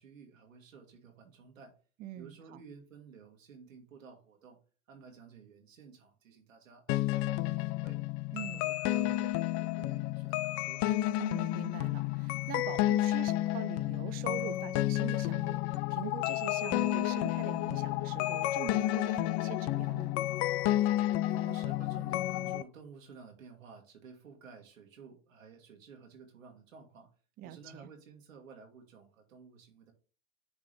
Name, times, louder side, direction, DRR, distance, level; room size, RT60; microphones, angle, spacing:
voice 1, 0.0-1.7 2.2-4.6 4.9-8.0 8.4-9.4 9.6-10.8 21.2-27.1 27.4-29.9, right 5 dB, 80° right, 2.0 m, -53 dB
voice 2, 2.0-2.6 8.3-8.6 11.2-20.1 27.4-27.9, right 12 dB, 25° right, 0.4 m, -43 dB
sound 1, 6.9-22.6, left 15 dB, 40° left, 0.4 m, -31 dB
9.6 x 3.8 x 3.4 m
hypercardioid pair, 90°, 39 cm